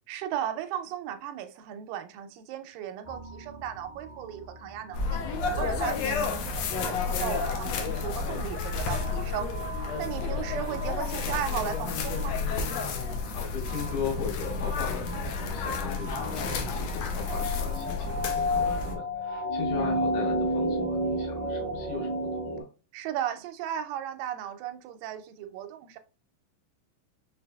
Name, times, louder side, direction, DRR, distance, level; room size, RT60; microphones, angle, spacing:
voice 1, 0.1-9.5 10.0-12.4 22.9-26.0, right 10 dB, 85° right, 2.2 m, -36 dB
sound 1, 3.0-22.6, equal, 70° right, 0.6 m, -34 dB
sound 2, 4.9-18.9, left 5 dB, 90° left, 1.5 m, -31 dB
voice 2, 13.3-22.7, left 5 dB, 70° left, 3.2 m, -38 dB
6.0 x 3.3 x 2.2 m
omnidirectional pair, 3.9 m